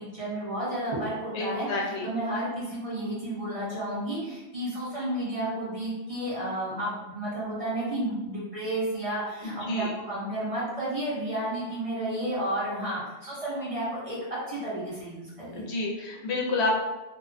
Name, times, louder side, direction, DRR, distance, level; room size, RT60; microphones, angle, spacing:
voice 1, 0.1-15.6, right 1 dB, 40° right, -8 dB, 0.5 m, -32 dB
voice 2, 1.3-2.1 9.4-9.9 15.6-16.7, left 2 dB, 75° left, -2 dB, 0.8 m, -29 dB
2.4 x 2.1 x 2.5 m, 1.1 s
omnidirectional pair, 1.1 m